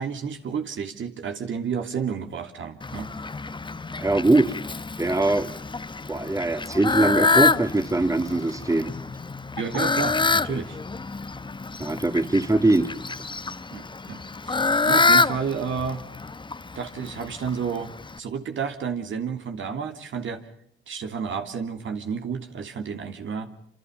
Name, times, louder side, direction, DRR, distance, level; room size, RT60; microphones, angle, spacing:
voice 1, 0.0-3.1 9.6-10.8 13.7-16.0 16.7-17.9 18.2-20.4 20.9-23.5, right 6 dB, 65° right, 5 dB, 3.1 m, -31 dB
Fowl, 2.8-18.2, left 3 dB, 20° left, 1.1 m, -27 dB
voice 2, 4.0-4.6 5.0-5.5 6.1-8.9 11.8-12.9, right 2 dB, 15° right, 8 dB, 2.4 m, -22 dB
27.5 x 27.0 x 5.4 m, 0.68 s
cardioid pair, 70°, 21 cm